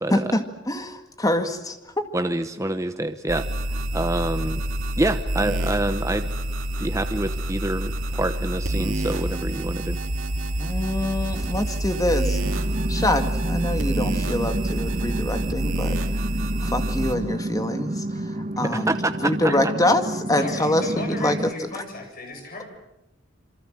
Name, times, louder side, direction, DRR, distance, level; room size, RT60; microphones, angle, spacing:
voice 1, 0.1-2.0 10.6-12.4 12.9-16.0 16.6-18.0 18.6-18.9 19.2-21.4, left 1 dB, 20° left, 7 dB, 2.1 m, -25 dB
voice 2, 2.1-3.5 3.9-4.6 5.0-6.3 6.8-10.0 18.6-19.7, right 2 dB, 15° right, 8 dB, 0.9 m, -26 dB
sound 1, 3.3-17.1, right 1 dB, 80° right, 2.5 m, -27 dB
sound 2, 12.4-21.5, right 1 dB, 40° right, 1.3 m, -30 dB
voice 3, 20.3-22.6, left 2 dB, 45° left, 3 dB, 8.0 m, -35 dB
27.5 x 24.5 x 7.7 m, 0.93 s
head